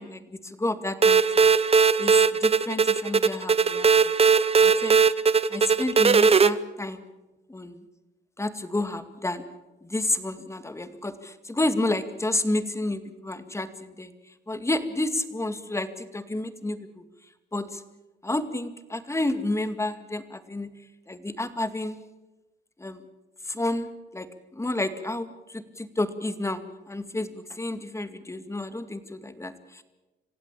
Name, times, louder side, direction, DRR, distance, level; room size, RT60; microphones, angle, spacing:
voice 1, 0.0-1.5 2.0-5.0 5.5-7.0 7.5-7.8 8.4-9.5 9.8-14.1 14.5-17.0 17.5-17.8 18.2-20.7 21.1-22.0 22.8-23.0 23.4-24.3 24.5-26.6 26.9-29.8, left 2 dB, 15° left, 11 dB, 2.1 m, -30 dB
sound 1, 1.0-6.5, right 5 dB, 30° right, 0.9 m, -19 dB
26.5 x 16.0 x 8.5 m, 1.1 s
cardioid pair, 90°, 20 cm